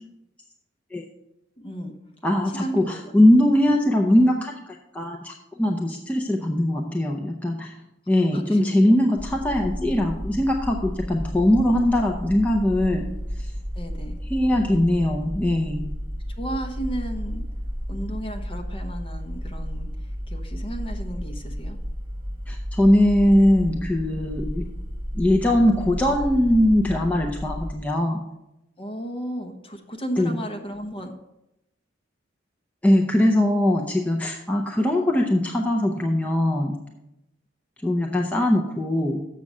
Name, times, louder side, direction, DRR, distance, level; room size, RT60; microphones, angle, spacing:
voice 1, 1.6-1.9 2.5-2.9 8.3-8.9 13.8-14.2 16.4-17.4 17.9-19.9 20.3-21.8 28.8-31.1, right 1 dB, 30° left, 5 dB, 0.9 m, -33 dB
voice 2, 2.2-4.5 4.9-7.7 8.1-13.1 14.3-15.9 22.5-24.7 25.1-28.2 30.2-30.4 32.8-36.8 37.8-39.2, left 1 dB, 10° left, -1 dB, 0.6 m, -21 dB
sound 1, 9.2-27.8, equal, 25° right, 1.1 m, -33 dB
7.5 x 6.1 x 5.4 m, 0.89 s
head